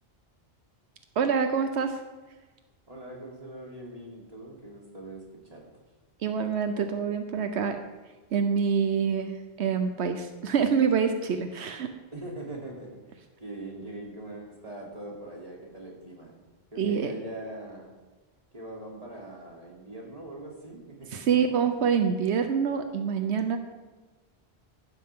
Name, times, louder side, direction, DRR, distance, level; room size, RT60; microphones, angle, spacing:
voice 1, 1.2-2.0 6.2-7.8 8.3-11.9 16.8-17.1 21.1-23.6, right 6 dB, 90° right, 7 dB, 1.1 m, -26 dB
voice 2, 2.9-5.7 12.1-13.0 13.4-16.4 16.7-17.9 18.5-21.2, right 1 dB, 35° right, -3 dB, 3.5 m, -41 dB
15.5 x 12.5 x 3.7 m, 1.3 s
omnidirectional pair, 1.1 m